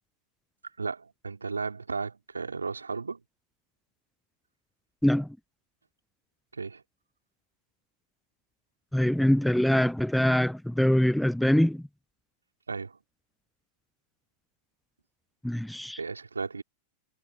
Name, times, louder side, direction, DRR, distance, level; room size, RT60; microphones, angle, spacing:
voice 1, 0.8-3.2 6.5-6.8 12.7-13.0 16.0-16.6, right 4 dB, 75° right, 4.7 m, -34 dB
voice 2, 8.9-11.8 15.4-16.0, equal, ahead, 0.3 m, -23 dB
figure-of-eight pair, 90°, 0 cm